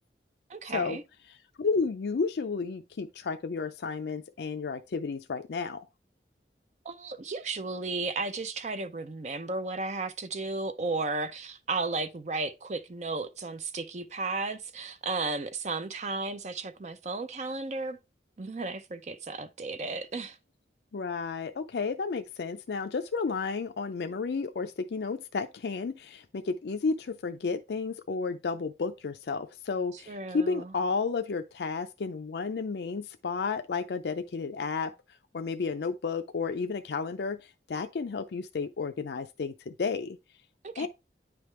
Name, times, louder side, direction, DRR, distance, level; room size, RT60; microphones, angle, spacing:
voice 1, 0.5-1.0 6.8-18.0 18.4-20.4 30.1-30.7 40.6-40.9, right 3 dB, 40° right, 0.5 m, -34 dB
voice 2, 1.6-5.9 20.9-34.9 35.3-37.4 37.7-40.2 40.8-40.9, left 4 dB, 75° left, 0.4 m, -32 dB
9.7 x 3.4 x 3.1 m
head